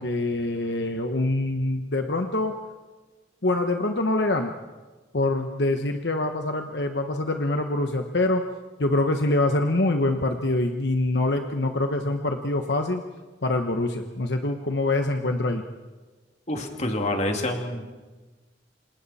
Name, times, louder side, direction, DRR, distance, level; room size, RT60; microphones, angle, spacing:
voice 1, 0.0-2.6 3.4-4.5 5.1-8.4 8.8-13.0 13.4-15.6, left 2 dB, 65° left, 5 dB, 1.2 m, -25 dB
voice 2, 16.5-17.9, left 1 dB, 40° left, 3 dB, 2.6 m, -27 dB
29.0 x 26.5 x 4.3 m, 1.3 s
head